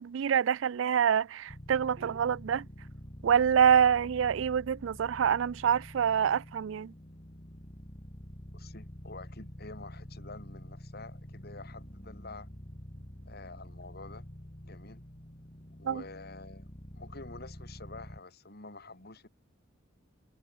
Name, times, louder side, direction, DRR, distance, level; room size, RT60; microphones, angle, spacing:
voice 1, 0.0-2.7 3.2-6.9 15.8-16.0, right 8 dB, 75° right, 0.4 m, -26 dB
sound 1, 1.5-18.2, equal, 35° left, 2.8 m, -47 dB
voice 2, 8.5-12.5 13.3-14.3 14.6-15.0 15.8-16.7 17.0-19.3, left 3 dB, 55° left, 3.9 m, -48 dB
head